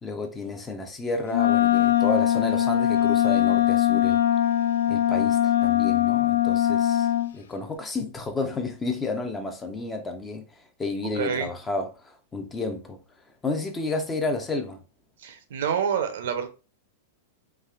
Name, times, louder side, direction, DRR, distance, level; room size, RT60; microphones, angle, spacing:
voice 1, 0.0-4.2 4.9-7.1 7.3-13.0 13.4-14.8, left 3 dB, 15° left, 0.5 m, -31 dB
Wind instrument woodwind instrument, 1.3-7.3, left 12 dB, 90° left, 0.4 m, -21 dB
voice 2, 11.1-11.5 15.2-16.5, right 7 dB, 75° right, 0.6 m, -27 dB
3.3 x 2.4 x 2.4 m
hypercardioid pair, 130°, 0 cm